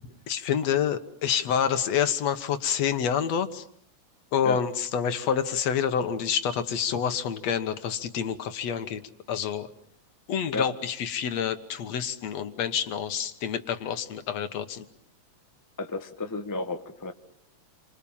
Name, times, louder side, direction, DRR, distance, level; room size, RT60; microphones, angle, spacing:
voice 1, 0.3-3.6 4.3-9.0 9.3-9.7 10.3-14.8, left 8 dB, 65° left, 10 dB, 2.4 m, -28 dB
voice 2, 15.8-17.1, left 3 dB, 20° left, 6 dB, 0.4 m, -32 dB
29.0 x 25.0 x 7.3 m, 0.64 s
omnidirectional pair, 3.5 m